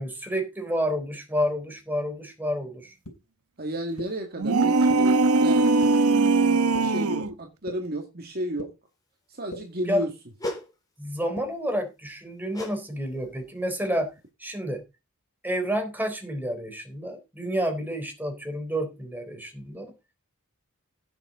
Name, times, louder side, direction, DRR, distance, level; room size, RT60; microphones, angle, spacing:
voice 1, 0.0-2.9 9.9-10.0 11.0-14.1 14.4-14.8 15.4-19.9, equal, 10° right, 3.8 m, -29 dB
sound 1, 3.0-3.1 4.0-4.1 4.9-5.0 5.8-5.9 6.7-6.8 7.7-7.8 8.6-8.7 9.5-9.6 10.4-10.5 11.4-11.5, left 1 dB, 90° left, 3.4 m, -36 dB
voice 2, 3.6-5.7 6.1-8.7 9.3-10.1, right 1 dB, 45° right, 2.1 m, -33 dB
sound 2, 4.4-7.3, right 3 dB, 75° right, 0.9 m, -20 dB
sound 3, 10.4-10.7 12.5-12.8 13.1-13.4 13.9-14.0, left 1 dB, 15° left, 3.4 m, -34 dB
16.5 x 7.3 x 3.9 m
head